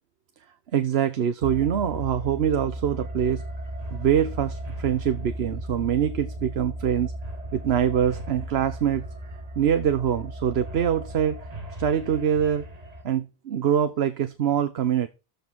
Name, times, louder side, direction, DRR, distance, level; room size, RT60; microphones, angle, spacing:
voice 1, 0.7-3.4 3.9-7.1 7.5-9.0 9.6-11.4 11.8-12.7 13.0-15.1, right 9 dB, 85° right, 1.1 m, -24 dB
sound 1, 1.4-13.0, right 1 dB, 40° right, 1.7 m, -36 dB
13.5 x 5.3 x 4.0 m
omnidirectional pair, 1.0 m